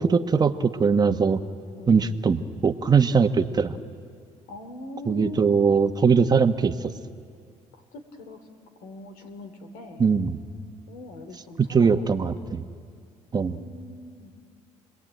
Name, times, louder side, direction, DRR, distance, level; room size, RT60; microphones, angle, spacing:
voice 1, 0.0-1.4 1.9-3.8 5.1-6.7 10.0-10.4 11.6-12.6 13.3-13.6, right 5 dB, 30° right, 8 dB, 1.1 m, -21 dB
voice 2, 1.7-2.2 4.5-5.7 8.2-8.4 8.8-10.0 10.9-12.1 13.5-14.3, left 2 dB, 90° left, 7 dB, 3.0 m, -41 dB
28.5 x 20.5 x 9.1 m, 2.2 s
cardioid pair, 90°, 13 cm